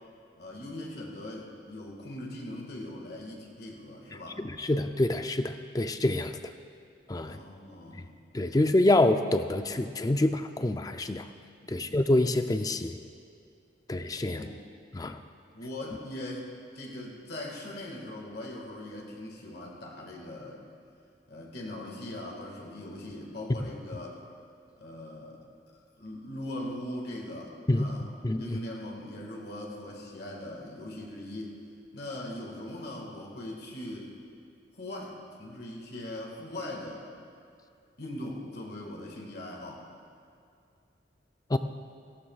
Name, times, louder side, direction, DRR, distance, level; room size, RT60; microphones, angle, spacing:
voice 1, 0.4-4.4 7.2-8.1 11.6-12.0 14.3-14.6 15.5-20.6 21.3-24.2 24.8-25.4 26.0-28.1 28.4-31.6 31.9-34.1 34.8-37.1 38.0-39.9, left 1 dB, 55° left, -1 dB, 1.8 m, -40 dB
voice 2, 4.4-6.4 7.1-7.4 8.3-11.3 11.7-13.0 13.9-14.5 14.9-15.2 27.7-27.9 28.2-28.6 41.5-41.6, left 1 dB, 20° left, 8 dB, 0.4 m, -26 dB
18.0 x 15.5 x 2.4 m, 2.5 s
head